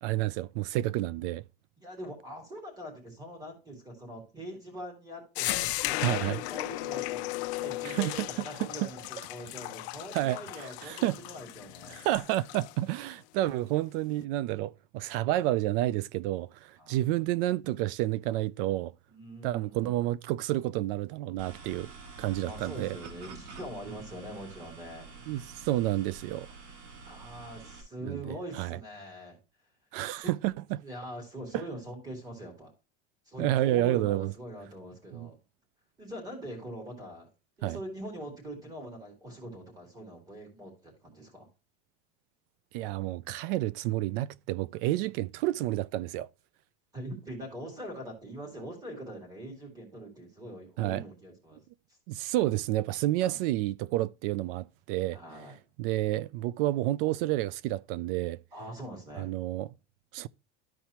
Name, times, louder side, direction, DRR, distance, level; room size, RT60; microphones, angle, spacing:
voice 1, 0.0-1.4 6.0-6.4 7.8-8.1 8.8-8.9 10.1-10.4 10.8-11.2 11.9-18.9 19.4-21.9 22.2-23.0 25.3-26.5 28.0-28.8 29.9-30.8 31.5-31.6 33.4-34.3 35.1-35.3 37.6-37.8 42.7-46.3 50.8-51.0 52.1-55.2 55.8-58.4 59.1-59.7 60.1-60.3, right 15 dB, 55° right, 0.4 m, -30 dB
voice 2, 1.8-10.9 11.2-12.0 16.8-17.0 19.1-20.0 22.5-25.1 27.0-29.4 30.2-30.3 30.8-32.7 33.2-35.3 36.0-37.3 37.6-41.5 46.9-51.6 53.2-53.4 55.1-55.6 58.5-59.3, right 1 dB, 10° right, 3.2 m, -43 dB
sound 1, 5.4-12.7, left 20 dB, 70° left, 0.6 m, -36 dB
sound 2, 5.4-9.7 10.0-10.1 11.3-11.4, left 13 dB, 30° left, 0.8 m, -42 dB
sound 3, 21.4-27.8, right 4 dB, 85° right, 3.2 m, -48 dB
13.5 x 4.5 x 2.9 m
cardioid pair, 170°, 34 cm